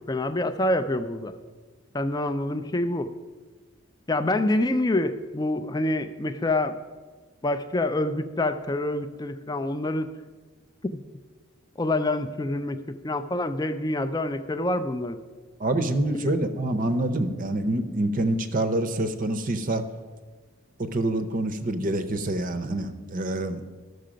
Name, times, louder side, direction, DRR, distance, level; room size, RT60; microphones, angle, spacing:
voice 1, 0.1-1.3 1.9-3.1 4.1-6.8 7.4-10.1 11.8-15.2 16.1-16.3, left 1 dB, 15° left, 10 dB, 0.4 m, -26 dB
voice 2, 15.6-19.8 20.8-23.6, right 1 dB, 35° right, 10 dB, 0.6 m, -26 dB
12.5 x 6.6 x 5.1 m, 1.4 s
head